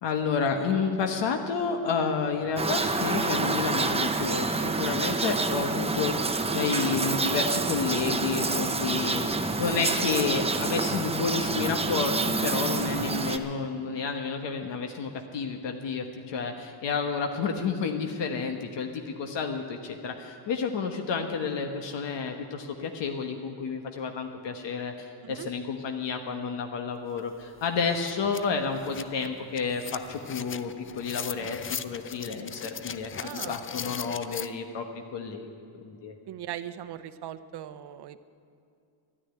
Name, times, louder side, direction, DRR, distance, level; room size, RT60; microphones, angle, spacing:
voice 1, 0.0-35.5 35.8-36.1, left 5 dB, 70° left, 4 dB, 1.2 m, -30 dB
sound 1, 2.6-13.4, right 3 dB, 15° right, 0.7 m, -28 dB
sound 2, 27.2-27.3 27.6-34.5, left 7 dB, 30° left, 0.5 m, -39 dB
voice 2, 33.2-33.6 36.3-38.2, right 11 dB, 60° right, 13 dB, 0.8 m, -40 dB
12.5 x 10.0 x 9.8 m, 2.5 s
cardioid pair, 115°, 44 cm